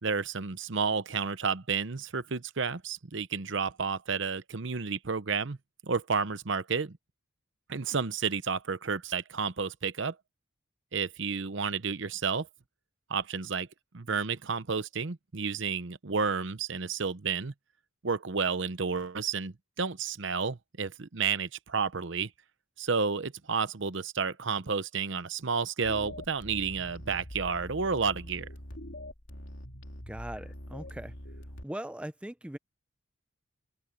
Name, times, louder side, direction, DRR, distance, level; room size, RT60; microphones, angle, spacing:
voice 1, 0.0-5.6 5.8-7.0 7.7-10.2 10.9-12.5 13.1-13.7 13.9-17.5 18.0-22.3 22.8-28.5, right 5 dB, 60° right, 0.8 m, -31 dB
sound 1, 25.8-31.6, left 1 dB, 65° left, 3.5 m, -44 dB
voice 2, 30.1-31.2 31.6-32.6, right 1 dB, 5° right, 0.5 m, -40 dB
open air
head